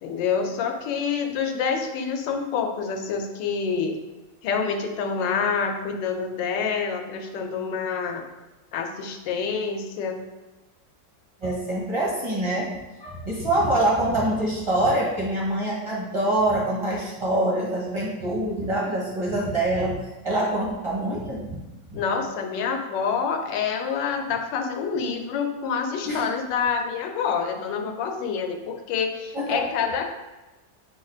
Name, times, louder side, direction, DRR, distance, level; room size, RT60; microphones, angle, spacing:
voice 1, 0.0-4.0 4.4-8.2 8.7-10.2 21.9-30.1, left 6 dB, 90° left, 4 dB, 1.3 m, -27 dB
voice 2, 11.4-12.7 13.0-20.0 20.2-21.6 26.1-26.2 29.3-29.6, right 1 dB, 30° right, -5 dB, 0.5 m, -25 dB
4.9 x 2.4 x 4.2 m, 1.1 s
omnidirectional pair, 1.9 m